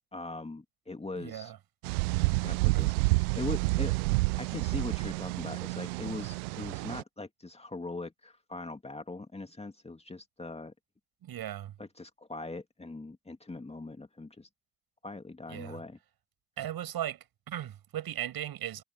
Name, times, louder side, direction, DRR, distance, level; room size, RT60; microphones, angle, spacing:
voice 1, 0.1-1.5 2.4-3.9 4.4-10.7 11.8-14.5 15.0-16.0, left 2 dB, 15° left, 2.4 m, -41 dB
voice 2, 1.2-1.6 2.7-2.9 11.2-11.7 15.5-15.8 16.6-18.8, right 12 dB, 50° right, 7.7 m, -37 dB
sound 1, 1.8-7.0, right 27 dB, 65° right, 0.7 m, -29 dB
figure-of-eight pair, 55°, 47 cm